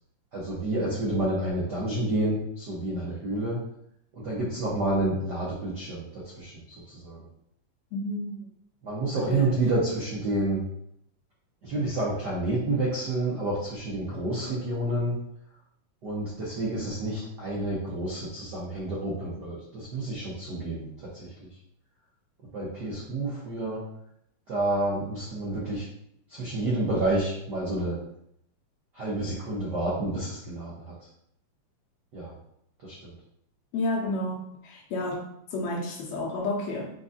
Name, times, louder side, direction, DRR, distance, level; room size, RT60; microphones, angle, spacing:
voice 1, 0.3-3.6 4.1-6.5 6.9-7.2 8.8-10.6 11.6-15.2 16.0-20.9 21.1-21.5 22.5-23.8 24.5-25.8 26.3-28.0 28.9-30.9 32.1-32.3 32.8-33.1, right 2 dB, 85° right, -6 dB, 0.9 m, -29 dB
voice 2, 7.9-8.4 9.3-9.5 33.7-34.4 34.6-35.2 35.5-36.9, left 2 dB, 70° left, -2 dB, 2.0 m, -30 dB
4.5 x 3.9 x 2.7 m, 0.73 s
omnidirectional pair, 3.4 m